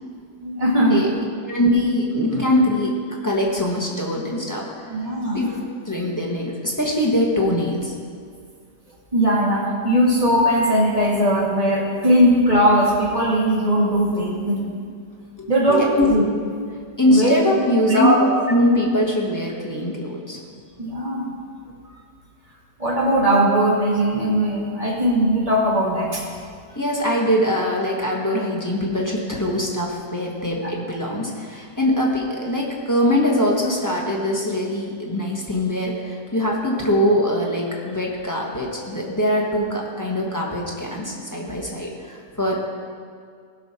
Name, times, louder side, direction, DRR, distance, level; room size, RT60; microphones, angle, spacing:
voice 1, 0.4-1.0 4.9-5.4 9.1-14.8 15.5-16.2 17.1-17.4 17.9-18.2 20.8-21.3 22.8-26.2, equal, 25° right, -4 dB, 1.9 m, -19 dB
voice 2, 1.4-2.9 3.2-4.6 5.3-5.5 5.8-7.9 15.4-15.5 15.9-16.1 17.0-18.1 18.5-20.4 26.7-42.5, left 1 dB, 15° left, -3 dB, 1.2 m, -22 dB
16.0 x 5.5 x 4.3 m, 2.2 s
omnidirectional pair, 1.7 m